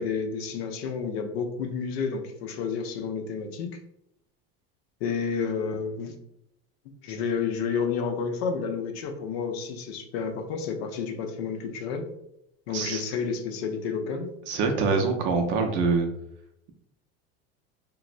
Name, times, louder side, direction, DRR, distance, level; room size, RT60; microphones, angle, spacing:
voice 1, 0.0-3.7 5.0-6.1 7.0-12.1 12.7-14.3, left 5 dB, 80° left, 6 dB, 0.6 m, -30 dB
voice 2, 12.7-13.0 14.5-16.1, right 4 dB, 40° right, 4 dB, 0.4 m, -24 dB
3.2 x 2.0 x 2.4 m, 0.79 s
supercardioid pair, 140°, 31 cm